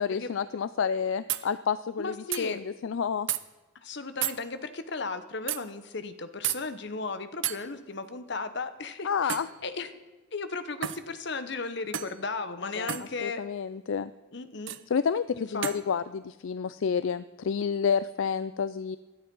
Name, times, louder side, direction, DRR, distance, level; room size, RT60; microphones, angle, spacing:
voice 1, 0.0-3.3 9.0-9.5 12.6-12.9 13.2-14.1 14.9-19.0, left 6 dB, 70° left, 15 dB, 0.4 m, -29 dB
sound 1, 0.8-0.9 1.3-1.5 2.3-2.5 3.3-3.4 4.2-4.4 5.5-5.6 6.4-6.6 7.4-7.6 9.3-9.5 10.8-11.0 11.9-12.2 12.9-13.1 14.7-14.8 15.6-15.8, right 11 dB, 65° right, 0.6 m, -31 dB
voice 2, 2.0-2.6 3.8-9.9 10.3-13.4 14.3-14.7 15.4-15.7, left 3 dB, 55° left, 10 dB, 1.0 m, -35 dB
16.5 x 11.5 x 5.4 m, 1.2 s
head